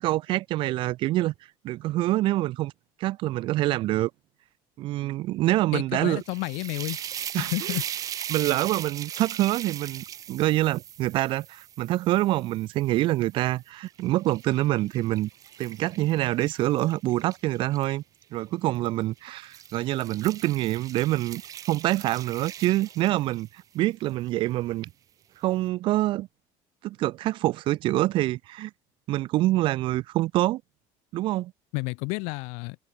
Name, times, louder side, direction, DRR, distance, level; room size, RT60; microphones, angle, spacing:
voice 1, 0.0-1.3 1.6-2.7 3.0-4.1 4.8-6.2 7.3-7.8 8.3-15.3 15.6-18.0 18.3-21.4 21.7-23.5 23.7-24.9 25.4-26.3 26.8-28.7 29.1-30.6 31.1-31.5, right 16 dB, 45° right, 1.6 m, -26 dB
voice 2, 5.7-7.0 7.4-7.8 31.7-32.8, left 31 dB, 75° left, 1.0 m, -30 dB
sound 1, 6.1-13.3 13.9-17.8 18.7-19.0 19.4-23.6, right 10 dB, 30° right, 1.3 m, -39 dB
cardioid pair, 180°, 12 cm